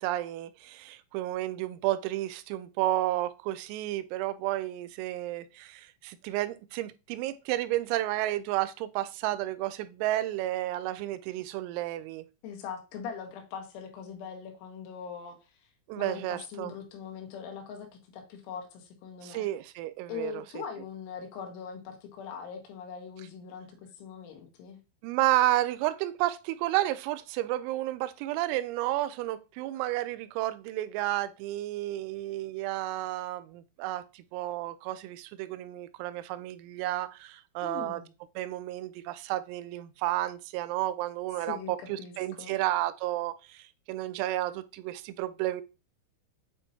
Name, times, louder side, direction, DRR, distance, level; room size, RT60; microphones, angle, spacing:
voice 1, 0.0-12.3 15.9-16.7 19.2-20.6 25.0-38.0 38.4-45.6, right 15 dB, 85° right, 3.2 m, -31 dB
voice 2, 12.4-15.4 16.0-19.5 20.1-24.8 37.6-38.1 41.4-42.5, left 7 dB, 75° left, 3.2 m, -41 dB
8.5 x 4.4 x 2.7 m
omnidirectional pair, 5.9 m